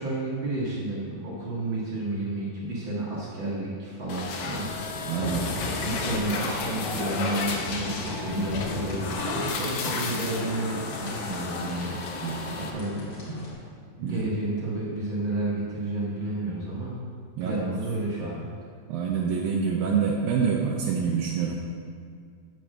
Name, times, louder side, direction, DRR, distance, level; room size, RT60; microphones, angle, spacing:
voice 1, 0.0-5.1 5.4-13.0 14.0-16.9 17.4-18.5, right 2 dB, 60° right, -6 dB, 1.3 m, -31 dB
sound 1, 4.1-12.7, left 4 dB, 90° left, 1.6 m, -32 dB
voice 2, 5.0-5.5 11.9-12.4 14.0-14.2 17.4-17.6 18.9-21.6, right 6 dB, 80° right, -2 dB, 2.4 m, -27 dB
sound 2, 5.1-13.5, left 1 dB, 45° left, 2.8 m, -39 dB
7.6 x 6.9 x 6.3 m, 2.1 s
omnidirectional pair, 4.4 m